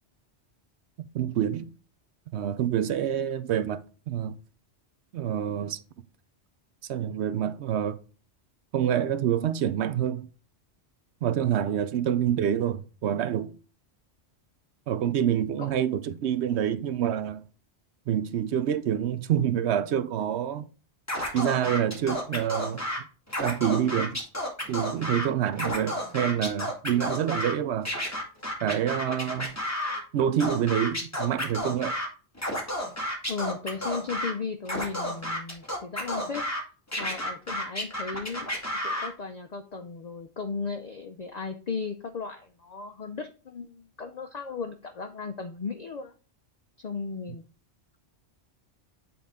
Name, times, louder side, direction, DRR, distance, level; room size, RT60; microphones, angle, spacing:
voice 1, 1.1-1.7 2.3-4.4 5.1-5.8 6.9-8.0 8.7-10.3 11.2-13.6 14.9-17.4 18.1-20.7 21.3-22.8 23.4-24.2 24.7-27.9 28.6-29.5 30.1-32.0, right 9 dB, 75° right, 0.8 m, -27 dB
Scratching (performance technique), 21.1-23.0 23.3-25.3 25.5-27.5 27.9-30.0 30.4-32.1 32.4-34.3 34.7-36.6 36.9-39.1, left 1 dB, 15° left, 1.9 m, -31 dB
voice 2, 33.3-36.4 37.0-38.5 38.8-46.1 46.8-47.4, left 4 dB, 50° left, 0.5 m, -36 dB
8.4 x 4.0 x 3.6 m
omnidirectional pair, 1.2 m